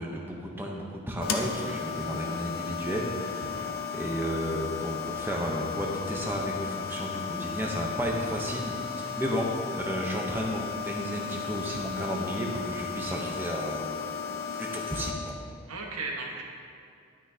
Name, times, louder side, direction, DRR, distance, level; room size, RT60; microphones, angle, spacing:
voice 1, 0.0-9.5 9.7-14.1 14.5-15.3, equal, 10° right, -2 dB, 0.8 m, -33 dB
sound 1, 1.2-15.1, left 6 dB, 60° left, 0.6 m, -35 dB
voice 2, 3.4-3.7 15.7-16.4, right 3 dB, 85° right, 0 dB, 1.3 m, -37 dB
10.0 x 9.4 x 2.8 m, 2.4 s
head